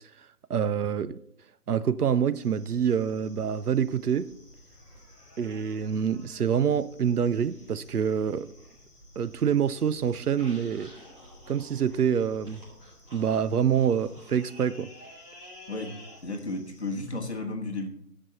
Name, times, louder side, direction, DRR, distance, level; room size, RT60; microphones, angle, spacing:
voice 1, 0.5-1.2 1.7-4.3 5.4-8.5 9.2-10.9 11.5-12.6 13.1-14.9, right 8 dB, 70° right, 0.7 m, -26 dB
sound 1, 2.3-16.9, left 1 dB, 25° left, 2.5 m, -54 dB
sound 2, 2.6-13.9, equal, 15° right, 4.1 m, -56 dB
sound 3, 7.5-8.8 9.1-14.5, equal, 30° right, 2.4 m, -54 dB
voice 2, 15.7-17.9, left 2 dB, 45° left, 1.3 m, -33 dB
13.5 x 5.3 x 4.3 m
figure-of-eight pair, 180°, 47 cm